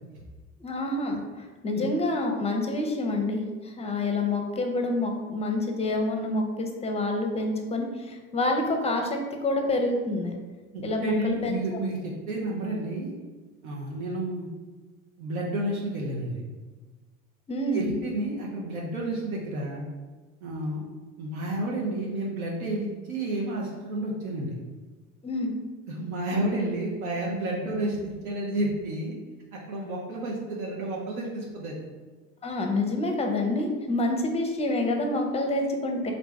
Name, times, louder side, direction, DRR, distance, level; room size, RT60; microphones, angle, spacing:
voice 1, 0.6-1.2 1.6-3.4 3.7-10.3 10.8-11.5 17.5-17.9 25.2-25.5 32.4-36.1, left 2 dB, 15° left, 3 dB, 0.5 m, -27 dB
voice 2, 10.7-13.1 13.6-14.5 15.2-16.4 17.7-19.8 20.4-20.8 21.2-24.5 25.9-29.2 29.5-31.8, right 1 dB, 85° right, -3 dB, 0.7 m, -31 dB
3.3 x 2.6 x 3.2 m, 1.3 s
hypercardioid pair, 75°, 42 cm